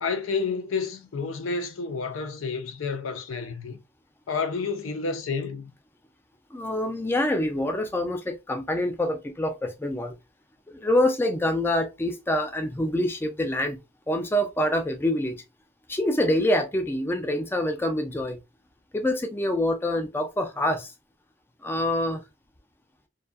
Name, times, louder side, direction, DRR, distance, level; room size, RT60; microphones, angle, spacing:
voice 1, 0.0-3.8 4.3-5.7, left 4 dB, 85° left, 0.5 m, -30 dB
voice 2, 6.5-10.1 10.7-13.8 14.1-15.4 15.9-18.4 18.9-20.9 21.6-22.2, left 1 dB, 10° left, 0.3 m, -26 dB
2.6 x 2.2 x 2.3 m
head